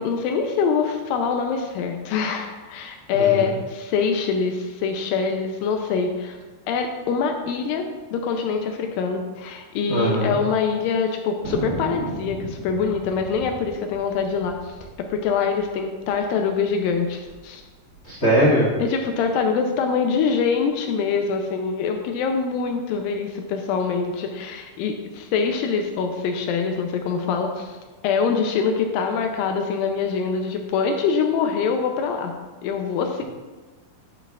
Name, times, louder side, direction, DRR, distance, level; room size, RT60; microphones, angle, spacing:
voice 1, 0.0-6.4 6.7-7.8 8.1-14.8 15.1-17.6 18.8-27.8 28.0-32.3 32.6-33.2, left 5 dB, 85° left, 4 dB, 2.0 m, -24 dB
voice 2, 3.1-3.5 9.9-10.3 18.0-18.7, equal, 35° left, -7 dB, 1.6 m, -20 dB
Thunder, 11.4-16.3 16.5-16.6 16.8-17.4 17.9-19.1, right 4 dB, 70° right, 2.1 m, -36 dB
11.0 x 5.6 x 2.4 m, 1.3 s
omnidirectional pair, 4.6 m